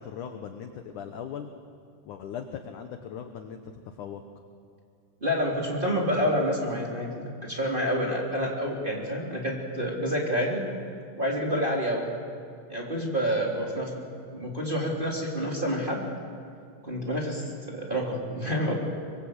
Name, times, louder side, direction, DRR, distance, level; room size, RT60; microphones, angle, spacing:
voice 1, 0.0-1.5 2.0-4.2, left 8 dB, 70° left, 6 dB, 2.0 m, -39 dB
voice 2, 5.2-10.6 11.2-12.2 12.7-14.0 14.3-16.0 16.8-18.7, equal, 15° right, -2 dB, 3.0 m, -28 dB
24.5 x 24.5 x 8.1 m, 2.4 s
omnidirectional pair, 4.8 m